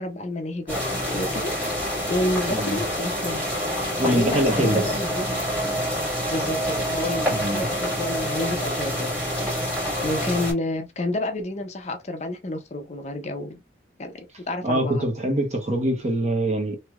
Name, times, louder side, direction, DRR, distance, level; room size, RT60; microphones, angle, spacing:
voice 1, 0.0-3.4 3.8-5.4 6.3-9.3 10.0-13.6 14.0-15.1, left 1 dB, 35° left, 0.5 m, -30 dB
sound 1, 0.7-10.5, equal, 10° right, 1.8 m, -27 dB
voice 2, 4.0-4.9 7.3-7.6 14.6-16.8, right 1 dB, 35° right, 0.9 m, -24 dB
3.1 x 2.9 x 2.3 m
head